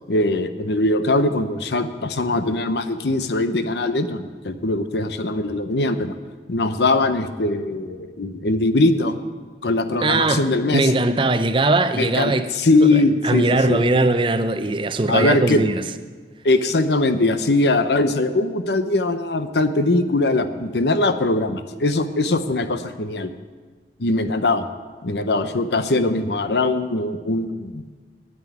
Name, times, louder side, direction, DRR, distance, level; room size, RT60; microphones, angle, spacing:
voice 1, 0.1-6.1 6.5-9.2 9.6-10.9 12.0-13.8 15.1-15.6 16.4-23.3 24.0-24.7 25.0-27.8, left 2 dB, 75° left, 10 dB, 0.8 m, -21 dB
voice 2, 10.0-12.5 12.8-15.8, right 2 dB, 30° right, 10 dB, 0.6 m, -20 dB
9.4 x 9.1 x 9.3 m, 1.4 s
head